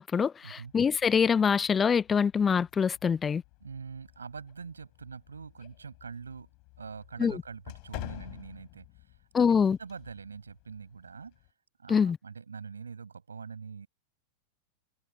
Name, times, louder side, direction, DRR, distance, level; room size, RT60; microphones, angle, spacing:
voice 1, 0.0-3.4 7.2-7.4 9.3-9.8 11.9-12.2, left 6 dB, 20° left, 0.6 m, -25 dB
sound 1, 0.6-11.5, left 34 dB, 45° left, 3.6 m, -50 dB
voice 2, 3.6-6.5 6.8-9.5 9.8-11.4 11.8-13.9, right 5 dB, 75° right, 7.0 m, -44 dB
figure-of-eight pair, 90°, 0 cm